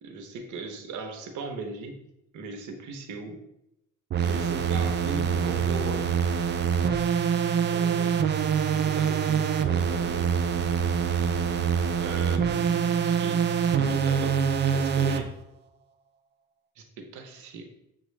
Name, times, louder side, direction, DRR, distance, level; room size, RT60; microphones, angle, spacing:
voice 1, 0.0-2.0 2.3-3.4 4.2-6.1 7.7-10.5 12.0-15.3 16.8-17.7, right 4 dB, 75° right, 4 dB, 0.8 m, -38 dB
sound 1, 4.1-15.2, right 7 dB, 35° right, 0.4 m, -25 dB
6.9 x 2.3 x 3.1 m, 0.83 s
cardioid pair, 90°, 30 cm